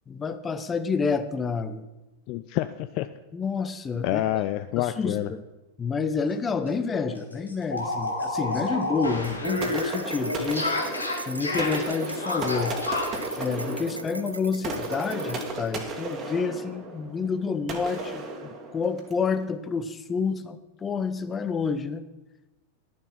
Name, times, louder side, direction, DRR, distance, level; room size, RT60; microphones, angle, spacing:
voice 1, 0.1-1.9 3.3-4.2 4.8-5.4 5.8-10.7 11.3-12.8 13.4-18.2 18.7-22.0, left 5 dB, 20° left, 12 dB, 0.7 m, -29 dB
voice 2, 2.3-3.1 4.0-5.3, left 14 dB, 40° left, 11 dB, 0.4 m, -27 dB
sound 1, 6.2-6.4 6.7-6.8 7.1-13.2, left 2 dB, 80° left, 1.6 m, -30 dB
sound 2, 9.2-15.7, right 1 dB, 85° right, 0.5 m, -39 dB
sound 3, 9.6-19.3, right 2 dB, 30° right, 1.8 m, -35 dB
11.5 x 7.2 x 5.9 m, 1.0 s
figure-of-eight pair, 90°, 0 cm